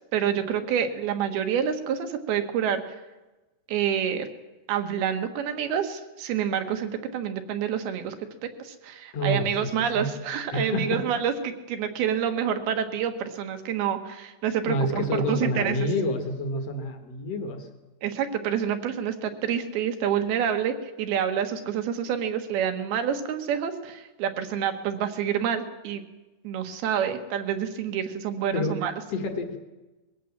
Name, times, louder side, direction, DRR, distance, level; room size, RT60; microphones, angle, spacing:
voice 1, 0.1-2.9 3.7-4.3 4.7-8.1 8.6-15.8 18.0-26.0 26.4-28.9, right 8 dB, 70° right, 7 dB, 3.2 m, -28 dB
voice 2, 9.1-9.7 9.9-10.1 10.5-11.0 14.7-17.7 28.5-28.7 29.1-29.6, left 1 dB, 50° left, 6 dB, 2.2 m, -28 dB
21.5 x 16.5 x 7.4 m, 1.1 s
omnidirectional pair, 4.9 m